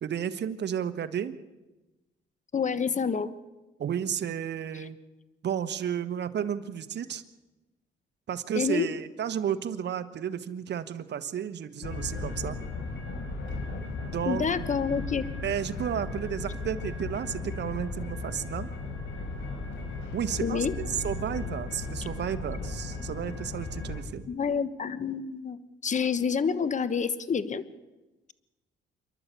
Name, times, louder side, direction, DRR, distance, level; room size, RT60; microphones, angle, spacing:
voice 1, 0.0-1.4 3.8-5.0 5.4-7.2 8.3-12.6 14.1-14.7 15.4-18.7 20.1-24.3, right 9 dB, 60° right, 10 dB, 1.3 m, -32 dB
voice 2, 2.5-3.3 8.5-8.9 14.3-15.3 20.4-20.7 24.3-25.6 25.8-27.6, left 6 dB, 40° left, 14 dB, 1.2 m, -28 dB
sound 1, 11.8-24.0, left 3 dB, 75° left, 4.1 m, -36 dB
28.0 x 11.5 x 8.4 m, 1.1 s
cardioid pair, 90°, 20 cm